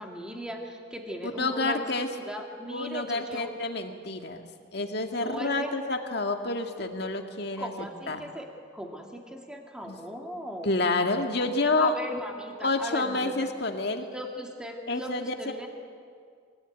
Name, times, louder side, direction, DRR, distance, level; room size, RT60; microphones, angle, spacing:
voice 1, 0.0-1.9 2.2-3.5 5.2-5.7 7.6-8.5 8.7-10.7 11.8-13.4 14.1-15.7, equal, 5° right, 1 dB, 2.1 m, -38 dB
voice 2, 1.4-2.1 2.7-4.4 4.7-7.7 8.1-8.2 9.9-10.0 10.7-11.9 12.6-14.1 14.9-15.3, left 2 dB, 55° left, 4 dB, 1.9 m, -28 dB
23.5 x 17.0 x 9.3 m, 2.2 s
head